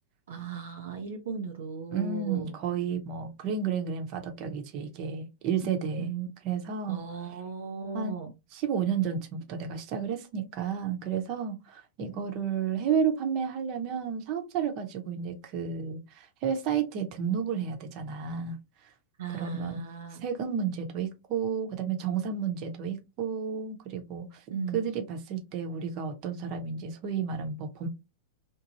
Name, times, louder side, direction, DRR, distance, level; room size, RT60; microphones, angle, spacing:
voice 1, 0.3-2.6 5.6-6.3 6.9-8.3 19.2-20.2 24.5-24.9, right 6 dB, 70° right, 0.5 m, -37 dB
voice 2, 1.9-6.1 6.4-7.0 7.9-8.1 8.5-18.6 19.3-19.8 20.2-24.4 24.7-27.9, right 7 dB, 45° right, 0.8 m, -31 dB
3.0 x 2.2 x 2.6 m
hypercardioid pair, 100°, 0 cm